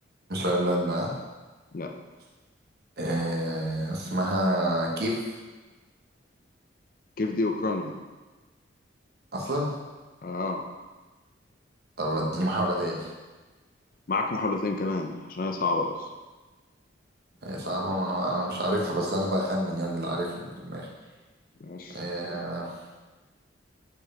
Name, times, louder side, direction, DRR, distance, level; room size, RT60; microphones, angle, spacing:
voice 1, 0.3-1.1 3.0-5.2 9.3-9.7 12.0-13.1 17.4-20.9 21.9-22.7, right 1 dB, 55° right, -1 dB, 1.1 m, -28 dB
voice 2, 7.2-7.9 10.2-10.6 14.1-16.0 21.6-22.0 22.3-22.4, left 3 dB, 45° left, 3 dB, 0.5 m, -29 dB
5.2 x 4.7 x 5.6 m, 1.2 s
head